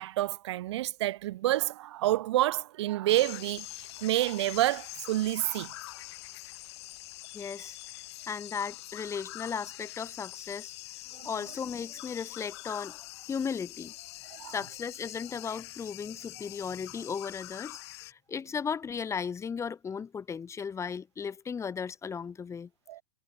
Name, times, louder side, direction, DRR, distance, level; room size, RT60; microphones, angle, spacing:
voice 1, 0.0-5.7 11.1-11.3 14.3-14.6 22.9-23.0, right 15 dB, 65° right, 1.0 m, -29 dB
sound 1, 3.1-18.1, left 18 dB, 60° left, 3.1 m, -45 dB
voice 2, 7.3-7.8 8.3-10.7 11.2-13.9 14.2-22.7, left 6 dB, 20° left, 1.8 m, -36 dB
hypercardioid pair, 105°, 16 cm